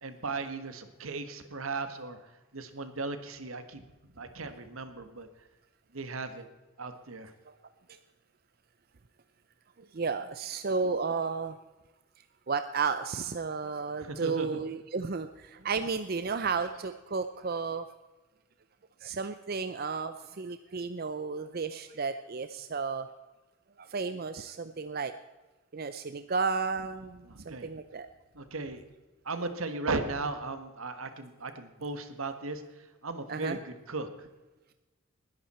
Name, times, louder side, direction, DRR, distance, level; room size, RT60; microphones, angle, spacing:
voice 1, 0.0-3.8 4.2-5.3 5.9-6.5 6.8-7.3 14.0-14.6 27.3-27.7 28.3-28.8 29.2-32.6 33.0-34.3, right 3 dB, 80° right, 9 dB, 1.5 m, -36 dB
voice 2, 9.9-11.6 12.5-17.8 19.0-23.1 23.8-25.1 25.7-28.1 33.3-33.6, right 5 dB, 45° right, 10 dB, 0.5 m, -33 dB
20.5 x 11.0 x 4.3 m, 1.2 s
head